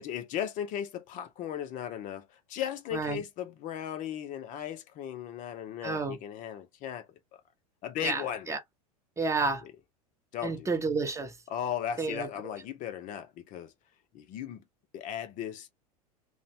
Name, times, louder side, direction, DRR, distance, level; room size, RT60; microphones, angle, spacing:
voice 1, 0.0-7.1 7.8-8.5 9.6-9.7 10.3-10.7 11.5-13.7 14.1-14.6 14.9-15.7, left 10 dB, 40° left, 0.6 m, -36 dB
voice 2, 5.8-6.2 8.0-8.2 8.5-8.6 9.2-9.6 10.4-11.3 12.0-12.3, right 4 dB, 15° right, 0.6 m, -30 dB
2.9 x 2.1 x 2.7 m
hypercardioid pair, 90°, 20 cm